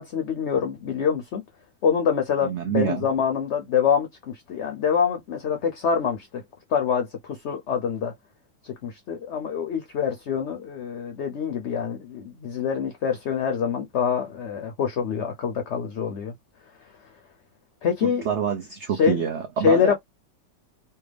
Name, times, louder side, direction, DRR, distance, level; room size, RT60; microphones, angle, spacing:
voice 1, 0.0-1.4 1.8-6.4 6.7-8.1 8.6-16.3 17.8-18.2 18.9-19.2 19.6-19.9, left 7 dB, 55° left, 0.8 m, -25 dB
voice 2, 2.4-3.0 18.0-19.9, right 7 dB, 60° right, 0.7 m, -26 dB
3.4 x 2.2 x 3.3 m
omnidirectional pair, 1.8 m